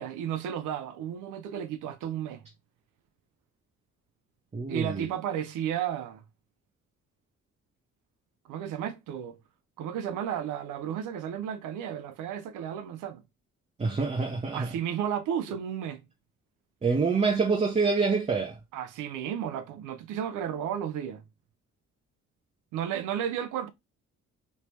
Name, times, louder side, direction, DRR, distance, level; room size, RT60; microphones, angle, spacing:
voice 1, 0.0-2.4 4.7-6.2 8.5-9.4 9.8-13.2 14.5-16.0 18.7-21.2 22.7-23.7, right 9 dB, 90° right, 0.6 m, -33 dB
voice 2, 4.5-5.1 13.8-14.7 16.8-18.6, right 4 dB, 20° right, 0.7 m, -26 dB
3.2 x 2.8 x 3.2 m
cardioid pair, 90°, 30 cm